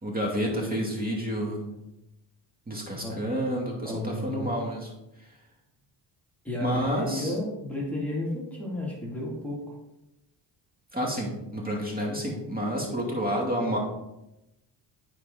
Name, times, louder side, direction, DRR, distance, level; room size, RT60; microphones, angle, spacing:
voice 1, 0.0-1.6 2.7-4.9 5.2-5.3 6.6-7.3 10.9-13.8, equal, 20° right, -1 dB, 2.6 m, -29 dB
voice 2, 3.8-4.5 6.4-9.7, left 1 dB, 5° left, -5 dB, 2.5 m, -32 dB
9.0 x 4.7 x 3.9 m, 0.91 s
supercardioid pair, 70°, 47 cm